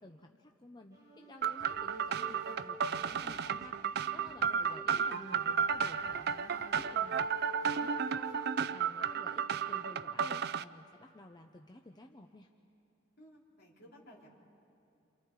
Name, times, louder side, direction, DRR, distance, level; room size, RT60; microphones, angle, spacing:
voice 1, 0.0-12.5, left 1 dB, 20° left, 3 dB, 0.7 m, -53 dB
sound 1, 0.9-9.7, equal, 20° right, 4.0 m, -50 dB
sound 2, 1.4-10.6, right 7 dB, 55° right, 0.4 m, -33 dB
sound 3, 1.6-2.0 2.3-4.6 4.9-6.7, equal, ahead, 5.9 m, -62 dB
voice 2, 13.2-14.3, equal, 55° left, -3 dB, 3.8 m, -57 dB
28.5 x 27.5 x 4.8 m, 2.6 s
head